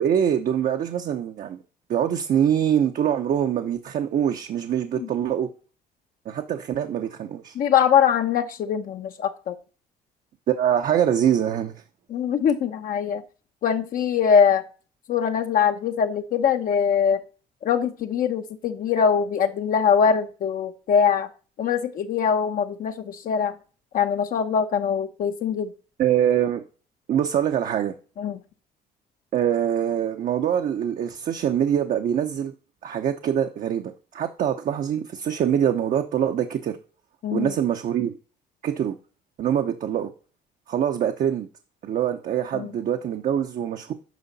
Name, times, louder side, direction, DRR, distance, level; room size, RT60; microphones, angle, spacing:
voice 1, 0.0-1.6 1.9-5.5 6.3-7.5 10.5-11.7 26.0-26.6 27.1-27.9 29.3-32.5 32.8-36.8 37.3-38.1 38.6-39.0 39.4-40.1 40.7-41.5 41.8-43.9, right 9 dB, 55° right, 0.8 m, -24 dB
voice 2, 7.6-9.5 12.1-13.2 13.6-14.6 15.1-17.2 17.6-21.3 21.6-23.5 23.9-25.7 28.2-28.4 37.2-37.5 42.5-42.7, left 7 dB, 55° left, 0.8 m, -22 dB
9.3 x 5.6 x 4.1 m
cardioid pair, 110°, 17 cm